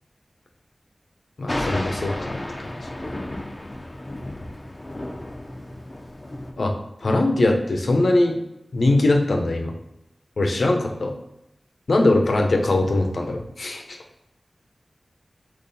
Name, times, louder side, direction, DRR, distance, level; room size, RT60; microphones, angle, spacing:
voice 1, 1.4-2.9 6.6-6.7 7.0-8.4 8.7-9.7 10.4-11.1 11.9-14.0, left 2 dB, 80° left, 3 dB, 0.8 m, -21 dB
Thunder, 1.5-6.5, left 1 dB, 30° left, 0.6 m, -32 dB
3.9 x 3.1 x 4.2 m, 0.84 s
wide cardioid pair, 75°, 0 cm